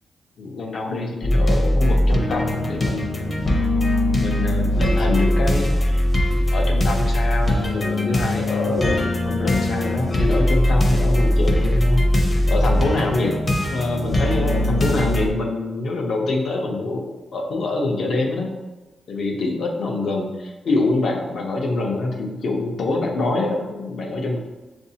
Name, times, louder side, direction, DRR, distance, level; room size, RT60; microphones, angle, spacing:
voice 1, 0.4-3.5 4.2-6.0 6.3-13.3 13.7-18.5 19.1-24.4, left 2 dB, 70° left, 0 dB, 0.7 m, -25 dB
sound 1, 1.2-15.3, left 1 dB, 30° left, 0.7 m, -20 dB
6.8 x 2.6 x 2.8 m, 1.1 s
cardioid pair, 105°, 0 cm